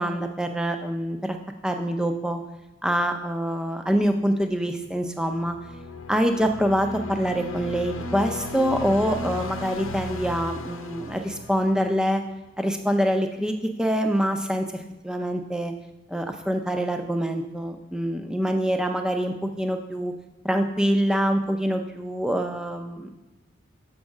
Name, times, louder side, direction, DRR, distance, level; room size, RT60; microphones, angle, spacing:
voice 1, 0.0-1.4 1.6-2.4 2.8-5.6 6.1-12.2 12.6-15.7 16.1-20.1 20.4-23.3, equal, 5° right, 5 dB, 0.4 m, -25 dB
sound 1, 4.8-12.2, left 2 dB, 85° left, 0.7 m, -36 dB
6.2 x 4.7 x 6.3 m, 1.1 s
head